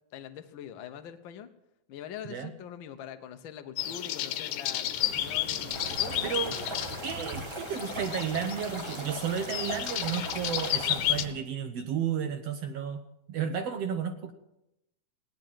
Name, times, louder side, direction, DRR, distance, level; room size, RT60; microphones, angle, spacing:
voice 1, 0.1-1.5 1.9-6.8, left 9 dB, 65° left, 8 dB, 1.2 m, -44 dB
sound 1, 3.8-11.2, left 13 dB, 80° left, 2.3 m, -32 dB
sound 2, 4.9-11.3, right 2 dB, 85° right, 5.8 m, -44 dB
Stream, 5.7-11.0, right 1 dB, 15° right, 1.0 m, -40 dB
voice 2, 6.2-6.6 7.0-13.0 13.3-14.3, right 8 dB, 65° right, 7 dB, 1.8 m, -32 dB
17.0 x 10.5 x 7.5 m, 0.85 s
omnidirectional pair, 3.5 m